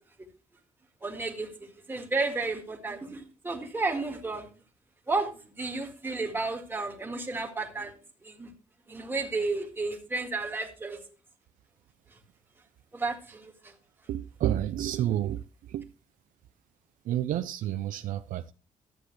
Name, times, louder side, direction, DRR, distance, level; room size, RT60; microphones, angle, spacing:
voice 1, 1.0-1.5 1.9-4.5 5.1-7.9 8.2-8.5 8.9-11.0 12.9-13.7, right 3 dB, 15° right, 1.9 m, -32 dB
voice 2, 14.1-15.9 17.0-18.5, right 12 dB, 90° right, 0.5 m, -30 dB
12.5 x 7.9 x 3.2 m
cardioid pair, 145°, 13 cm